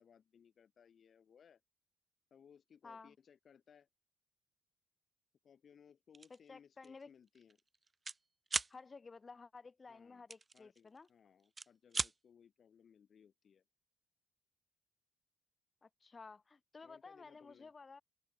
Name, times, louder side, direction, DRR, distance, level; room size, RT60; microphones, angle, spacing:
voice 1, 0.0-1.6 2.3-3.9 5.4-7.6 9.9-10.3 10.5-13.6 16.8-17.7, left 7 dB, 55° left, 3.7 m, -64 dB
voice 2, 2.8-3.1 6.3-7.1 8.7-11.1 15.8-18.0, left 4 dB, 30° left, 4.3 m, -54 dB
sound 1, 6.1-6.4 6.8-7.0 7.3-8.2 8.5-8.7 10.3-11.1 11.4-12.1, right 3 dB, 25° right, 0.5 m, -38 dB
open air
cardioid pair, 90°, 0 cm